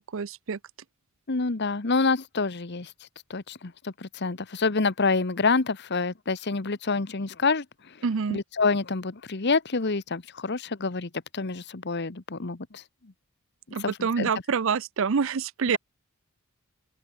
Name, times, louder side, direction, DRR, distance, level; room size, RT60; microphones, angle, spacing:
voice 1, 0.1-0.6 8.0-8.4 13.7-15.8, right 6 dB, 65° right, 0.5 m, -26 dB
voice 2, 1.3-2.9 3.3-7.6 8.3-12.8 13.8-14.3, left 4 dB, 50° left, 1.1 m, -27 dB
open air
head